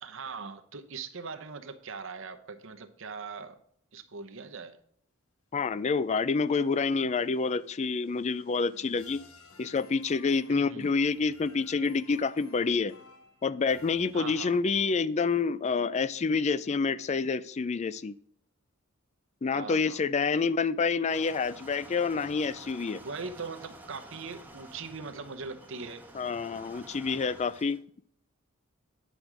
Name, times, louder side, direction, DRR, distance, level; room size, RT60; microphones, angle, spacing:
voice 1, 0.0-3.6 3.9-4.8 10.5-10.9 14.1-14.6 19.5-20.1 23.0-26.0, right 4 dB, 65° right, 7 dB, 0.9 m, -41 dB
voice 2, 5.5-9.2 9.6-12.9 13.4-18.1 19.4-23.0 26.1-27.8, left 4 dB, 30° left, 17 dB, 0.4 m, -28 dB
sound 1, 5.8-14.7, left 3 dB, 80° left, 1.5 m, -56 dB
sound 2, 21.1-27.8, right 1 dB, 10° right, 1.1 m, -50 dB
10.0 x 5.1 x 6.1 m, 0.64 s
head